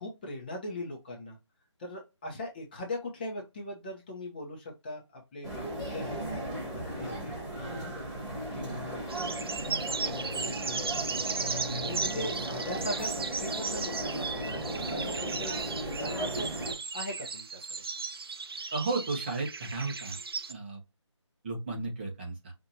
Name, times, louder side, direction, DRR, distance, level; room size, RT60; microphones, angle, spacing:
voice 1, 0.0-1.4 1.8-7.4 8.5-9.0 9.9-11.3 11.7-15.5 15.9-16.5 16.9-17.6, left 1 dB, 20° left, 0 dB, 0.8 m, -40 dB
sound 1, 5.4-16.7, right 1 dB, 5° right, 1.6 m, -36 dB
sound 2, 9.1-20.5, right 5 dB, 50° right, 0.5 m, -36 dB
voice 2, 18.7-20.2 20.5-20.8 21.4-22.5, right 3 dB, 20° right, 0 dB, 1.0 m, -34 dB
5.6 x 2.6 x 2.8 m, 0.25 s
figure-of-eight pair, 160°, 16 cm